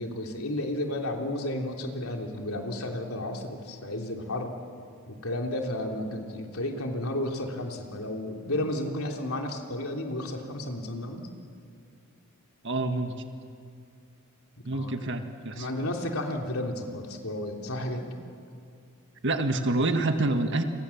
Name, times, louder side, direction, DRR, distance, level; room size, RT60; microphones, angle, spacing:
voice 1, 0.0-4.5 5.1-11.3 14.7-15.0 15.6-18.1, left 1 dB, 80° left, 2 dB, 3.4 m, -32 dB
voice 2, 12.6-13.1 14.7-15.7 19.2-20.6, right 2 dB, 55° right, 6 dB, 1.7 m, -27 dB
30.0 x 26.5 x 7.3 m, 2.4 s
head